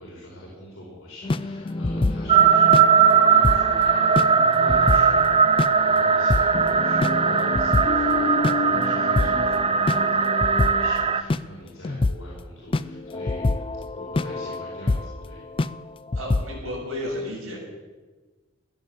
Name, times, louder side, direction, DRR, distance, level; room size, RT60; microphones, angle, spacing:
voice 1, 0.0-13.5 13.9-15.4, equal, 70° left, -6 dB, 4.9 m, -43 dB
sound 1, 1.2-11.4 11.8-12.2 12.7-15.2 15.5-15.8 16.1-16.5, left 2 dB, 25° left, 0.4 m, -26 dB
sound 2, 2.3-11.2, right 6 dB, 25° right, 0.6 m, -19 dB
voice 2, 16.1-17.6, left 1 dB, 75° right, -2 dB, 6.6 m, -32 dB
16.0 x 10.5 x 7.5 m, 1.3 s
head